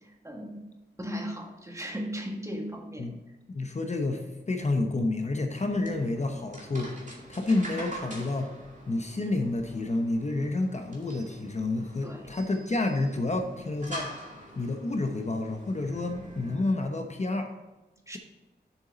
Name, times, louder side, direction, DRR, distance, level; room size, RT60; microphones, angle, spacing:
voice 1, 0.2-0.7 1.0-3.1 12.0-12.2 18.1-18.2, equal, 15° right, 1 dB, 1.5 m, -36 dB
voice 2, 3.5-7.0 7.3-8.5 8.9-14.1 14.5-17.5, left 2 dB, 40° left, 4 dB, 0.9 m, -29 dB
sound 1, 5.7-16.6, right 1 dB, 45° right, 2.2 m, -45 dB
7.2 x 7.0 x 3.9 m, 1.1 s
wide cardioid pair, 85°, 18 cm